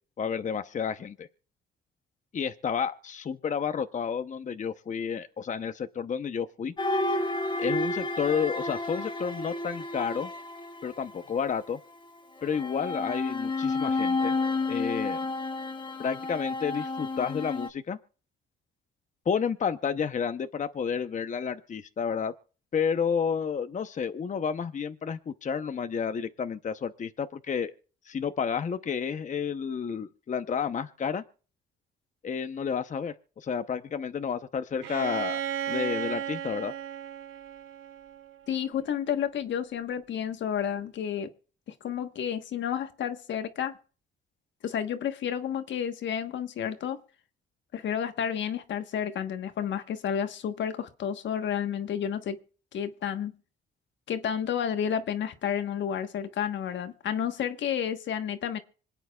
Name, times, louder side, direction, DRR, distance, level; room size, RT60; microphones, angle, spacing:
voice 1, 0.2-1.3 2.3-6.7 7.6-10.3 10.8-11.8 12.4-14.3 14.7-15.2 16.0-18.0 19.3-22.3 22.7-27.7 28.0-31.2 32.2-35.4 35.7-36.7, left 6 dB, 40° left, 0.8 m, -31 dB
sound 1, 6.8-11.5 12.4-17.7, left 2 dB, 25° left, 1.2 m, -31 dB
Bowed string instrument, 34.8-38.6, right 10 dB, 90° right, 1.3 m, -35 dB
voice 2, 38.5-41.3 41.8-43.8 44.6-47.0 47.7-52.4 52.7-53.3 54.1-58.6, left 8 dB, 70° left, 1.3 m, -31 dB
26.0 x 9.1 x 2.3 m
cardioid pair, 90°, 20 cm